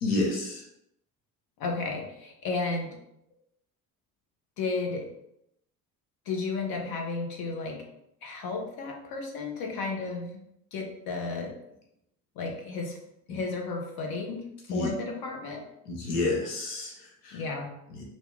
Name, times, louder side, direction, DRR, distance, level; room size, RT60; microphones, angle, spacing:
voice 1, 0.0-0.6 13.3-13.4 14.7-14.9 15.9-17.4 17.9-18.0, left 2 dB, 90° left, -1 dB, 0.9 m, -30 dB
voice 2, 1.6-3.0 4.6-5.1 6.3-7.8 8.2-10.4 10.7-11.5 12.4-13.0 13.3-15.6 17.3-17.7, left 3 dB, 50° left, 1 dB, 1.0 m, -33 dB
3.0 x 2.7 x 3.4 m, 0.80 s
hypercardioid pair, 60°, 45 cm